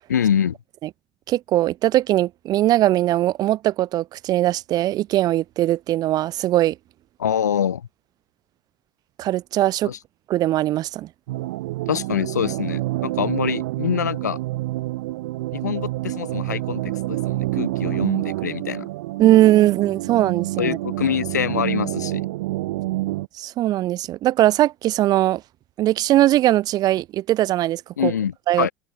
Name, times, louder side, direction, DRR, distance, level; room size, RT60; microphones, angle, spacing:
voice 1, 0.1-0.6 7.2-7.9 9.8-10.0 11.9-14.4 15.5-18.9 20.6-22.3 28.0-28.7, left 8 dB, 85° left, 1.5 m, -25 dB
voice 2, 1.3-6.8 9.2-9.9 10.3-11.1 19.2-20.8 23.4-25.4 25.8-28.1 28.5-28.7, right 14 dB, 45° right, 0.3 m, -20 dB
sound 1, 11.3-23.3, right 18 dB, 75° right, 0.7 m, -27 dB
hypercardioid pair, 65°, 9 cm